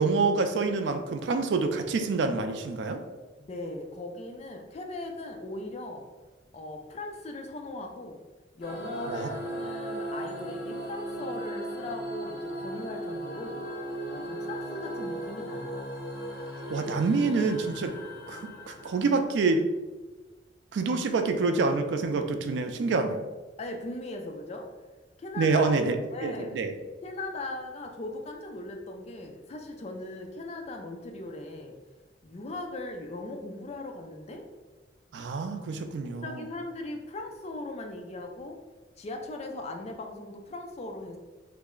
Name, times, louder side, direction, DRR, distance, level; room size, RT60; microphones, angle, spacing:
voice 1, 0.0-3.0 9.1-9.3 16.7-17.9 18.3-19.7 20.7-23.3 25.4-26.7 35.1-36.4, right 4 dB, 75° right, 7 dB, 0.3 m, -27 dB
voice 2, 3.4-6.1 6.5-8.2 8.5-13.6 14.1-15.9 23.6-24.7 25.2-26.5 27.0-31.8 32.2-34.5 36.2-38.6 39.0-41.2, left 2 dB, 35° left, 3 dB, 0.4 m, -39 dB
sound 1, 8.6-19.5, right 1 dB, 65° left, 0.7 m, -37 dB
3.2 x 2.0 x 3.6 m, 1.2 s
head